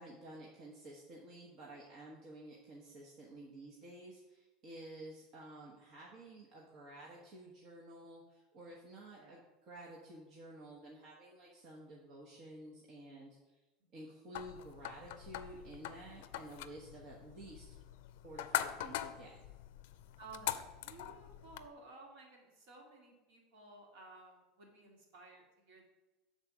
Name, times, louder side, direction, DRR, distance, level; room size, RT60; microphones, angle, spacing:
voice 1, 0.0-13.6 13.9-17.8 18.2-19.4, right 1 dB, 45° right, -3 dB, 1.2 m, -52 dB
sound 1, 14.3-21.7, left 13 dB, 80° left, 0.4 m, -43 dB
voice 2, 20.2-25.8, right 3 dB, 65° right, -1 dB, 2.3 m, -56 dB
7.0 x 4.1 x 6.1 m, 1.1 s
supercardioid pair, 150°, 0 cm